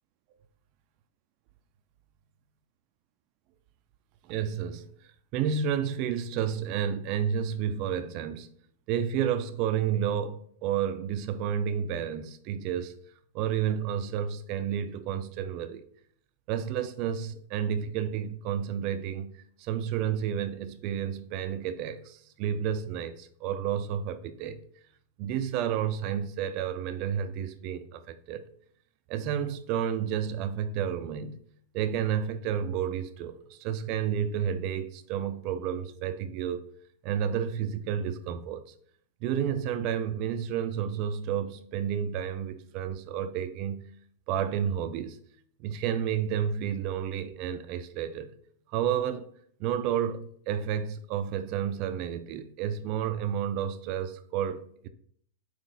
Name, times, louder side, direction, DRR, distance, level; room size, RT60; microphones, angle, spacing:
voice 1, 4.2-4.9 5.3-8.5 8.9-13.0 13.3-15.8 16.5-24.6 25.2-28.4 29.1-31.4 31.7-36.7 37.0-38.7 39.2-43.9 44.3-45.2 45.6-48.3 48.7-49.3 49.6-54.9, right 8 dB, 45° right, 0.4 m, -31 dB
5.5 x 2.4 x 3.9 m
hypercardioid pair, 130°, 0 cm